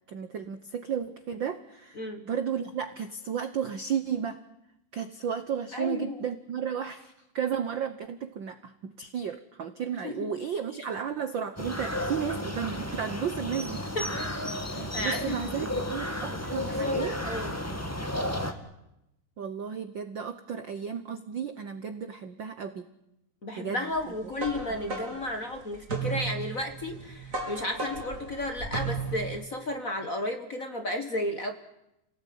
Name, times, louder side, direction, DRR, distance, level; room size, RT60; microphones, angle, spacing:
voice 1, 0.1-4.4 4.9-13.9 14.7-17.2 19.4-22.9 23.5-23.9 24.9-25.2, right 7 dB, 65° right, 10 dB, 1.2 m, -33 dB
voice 2, 2.0-2.3 5.7-6.2 10.0-10.3 13.9-15.7 16.0-16.1 16.6-17.6 23.4-31.5, left 1 dB, 35° left, 6 dB, 1.5 m, -33 dB
sound 1, 11.6-18.5, left 1 dB, 10° left, 0.8 m, -33 dB
sound 2, 24.0-29.4, right 4 dB, 25° right, 3.9 m, -35 dB
28.5 x 18.0 x 9.5 m, 0.88 s
omnidirectional pair, 3.5 m